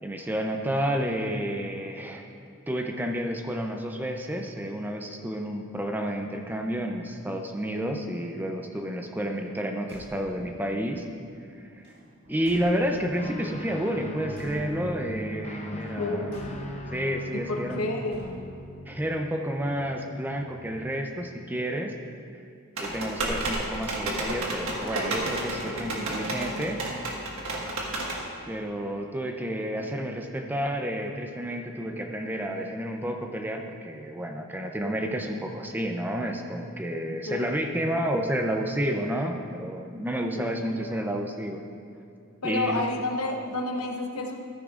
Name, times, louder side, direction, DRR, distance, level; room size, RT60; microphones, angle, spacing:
voice 1, 0.0-2.3 2.7-11.0 11.8-11.9 12.3-16.3 16.9-18.0 18.9-21.9 22.8-26.8 28.5-41.6 42.4-42.8, equal, 10° right, 3 dB, 0.5 m, -30 dB
Car / Truck / Slam, 9.8-10.6 11.8-13.2 14.3-15.1 16.3-17.0 18.1-18.7, equal, 50° right, 2.0 m, -49 dB
Guitar, 13.2-20.8, equal, 30° left, 0.7 m, -39 dB
voice 2, 15.7-16.6 17.3-18.3 27.6-27.8 37.3-37.6 40.3-40.5 40.9-41.1 42.4-44.4, left 2 dB, 80° left, 2 dB, 1.0 m, -31 dB
sound 1, 22.8-28.2, right 2 dB, 70° right, 1.6 m, -31 dB
13.5 x 10.0 x 2.5 m, 2.4 s
head